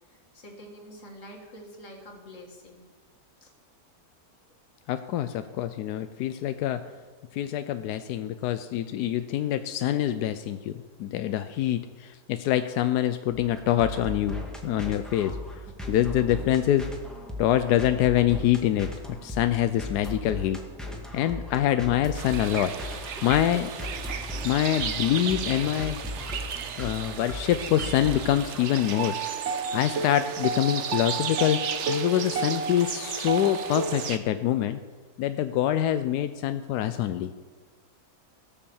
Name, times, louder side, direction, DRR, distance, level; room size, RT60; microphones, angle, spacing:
voice 1, 0.1-2.9 3.4-3.5, equal, 55° left, 1 dB, 2.4 m, -46 dB
voice 2, 4.9-6.8 7.3-15.4 15.9-16.9 17.4-18.9 19.2-20.6 21.1-23.7 24.4-26.0 26.7-29.2 29.7-34.8 35.2-37.5, left 12 dB, 90° left, 10 dB, 1.1 m, -25 dB
sound 1, 13.7-28.7, left 1 dB, ahead, 1.8 m, -37 dB
sound 2, 22.1-34.2, right 6 dB, 55° right, 1.0 m, -32 dB
17.5 x 7.0 x 7.1 m, 1.4 s
omnidirectional pair, 1.7 m